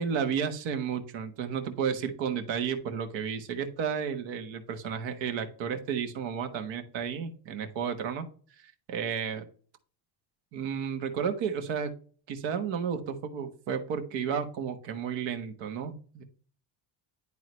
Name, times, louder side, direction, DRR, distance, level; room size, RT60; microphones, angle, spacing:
voice 1, 0.0-8.2 8.6-9.5 10.5-11.9 12.3-16.2, right 7 dB, 60° right, 7 dB, 1.4 m, -32 dB
11.0 x 3.8 x 3.2 m, 0.42 s
cardioid pair, 165°, 49 cm